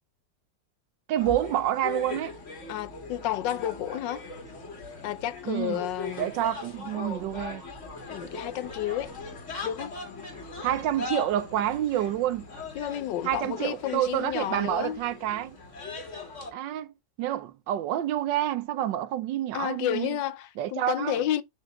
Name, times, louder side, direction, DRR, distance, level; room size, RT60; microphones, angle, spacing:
voice 1, 1.1-2.3 5.4-5.8 6.2-7.6 10.6-12.5 13.2-15.6 16.5-16.9 17.2-20.2 20.6-21.2, right 12 dB, 90° right, 1.4 m, -28 dB
sound 1, 1.2-16.5, left 3 dB, 40° left, 1.9 m, -40 dB
voice 2, 2.7-4.2 5.0-6.3 8.1-9.1 9.6-9.9 12.8-15.0 19.5-21.4, left 11 dB, 85° left, 1.4 m, -31 dB
6.4 x 5.0 x 3.1 m
omnidirectional pair, 1.9 m